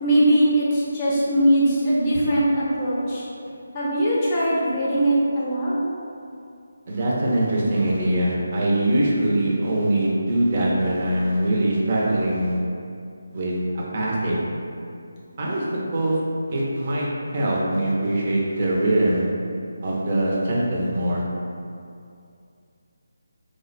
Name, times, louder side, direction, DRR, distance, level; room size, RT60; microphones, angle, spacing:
voice 1, 0.0-3.3 3.7-5.8, right 1 dB, 20° left, -7 dB, 0.7 m, -20 dB
voice 2, 6.9-12.6 13.3-14.4 15.4-15.6 15.9-16.2 16.5-17.1 17.3-19.3 19.8-21.2, right 1 dB, 35° right, -5 dB, 0.7 m, -22 dB
3.3 x 2.1 x 4.0 m, 2.4 s
figure-of-eight pair, 165°, 0 cm